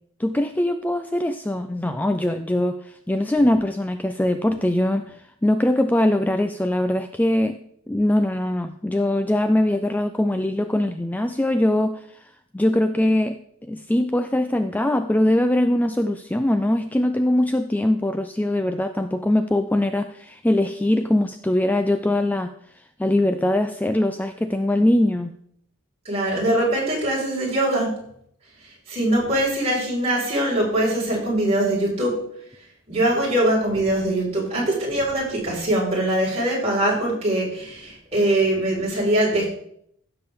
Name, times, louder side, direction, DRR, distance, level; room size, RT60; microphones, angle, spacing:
voice 1, 0.2-7.6 7.9-12.2 12.5-22.5 23.0-25.3, left 1 dB, 10° left, 8 dB, 0.3 m, -22 dB
voice 2, 26.0-28.0 28.6-32.2 32.9-39.5, right 1 dB, 30° right, -5 dB, 4.7 m, -22 dB
16.0 x 6.9 x 3.5 m, 0.68 s
head